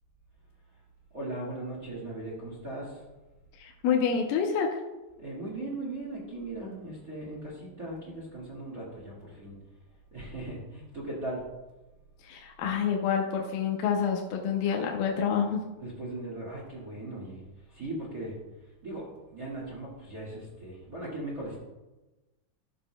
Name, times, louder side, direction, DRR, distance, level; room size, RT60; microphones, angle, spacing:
voice 1, 1.1-3.0 5.2-9.6 10.1-11.5 15.8-17.4 17.7-18.3 18.8-21.6, right 2 dB, 35° right, -5 dB, 1.7 m, -38 dB
voice 2, 3.6-4.8 12.3-15.6, left 7 dB, 85° left, 1 dB, 2.6 m, -28 dB
12.5 x 6.8 x 2.2 m, 1.1 s
omnidirectional pair, 4.0 m